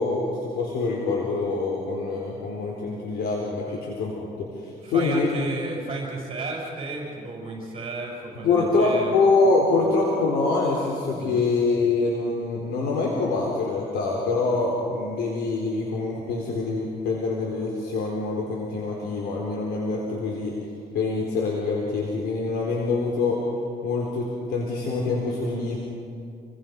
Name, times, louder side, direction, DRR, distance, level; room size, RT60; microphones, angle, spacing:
voice 1, 0.0-5.3 8.4-20.5 20.9-23.4 23.8-25.8, left 3 dB, 75° left, -2 dB, 4.2 m, -25 dB
voice 2, 4.8-9.1 11.2-11.4, right 3 dB, 35° right, -2 dB, 6.9 m, -33 dB
29.5 x 21.5 x 5.4 m, 2.5 s
cardioid pair, 110°, 17 cm